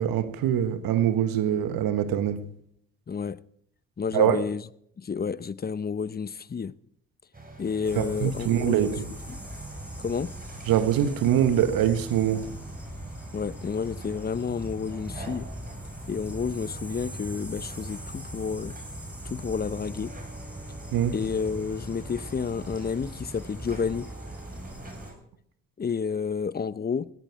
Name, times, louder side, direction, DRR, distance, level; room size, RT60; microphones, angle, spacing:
voice 1, 0.0-2.4 4.1-4.4 8.0-9.0 10.7-12.4 20.9-21.1, right 10 dB, 70° right, 1.5 m, -23 dB
voice 2, 3.1-3.4 4.0-4.6 5.0-6.7 7.6-8.9 9.3-9.4 10.0-10.3 13.3-15.5 16.1-18.7 19.2-20.1 21.1-24.1 25.8-27.1, left 6 dB, 25° left, 0.8 m, -30 dB
sound 1, 7.3-25.1, right 3 dB, 25° right, 5.9 m, -45 dB
sound 2, 7.8-25.1, equal, 5° right, 6.3 m, -40 dB
17.5 x 14.0 x 4.8 m
hypercardioid pair, 50°, 35 cm